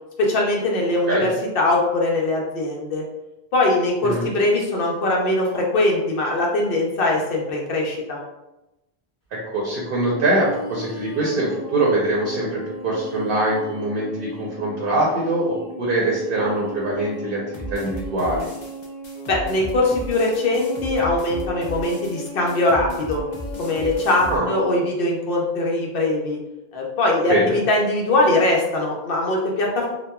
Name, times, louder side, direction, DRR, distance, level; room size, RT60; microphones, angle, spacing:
voice 1, 0.2-3.0 3.5-8.2 19.3-23.2 23.6-26.4 26.7-29.9, left 2 dB, 65° left, -2 dB, 0.8 m, -21 dB
voice 2, 9.5-18.5 24.3-24.5 27.3-27.5, right 2 dB, 65° right, -4 dB, 0.8 m, -23 dB
sound 1, 10.1-24.8, equal, 20° left, 1.0 m, -37 dB
sound 2, 17.5-24.4, equal, 45° left, 0.3 m, -35 dB
2.9 x 2.0 x 2.2 m, 0.95 s
omnidirectional pair, 1.0 m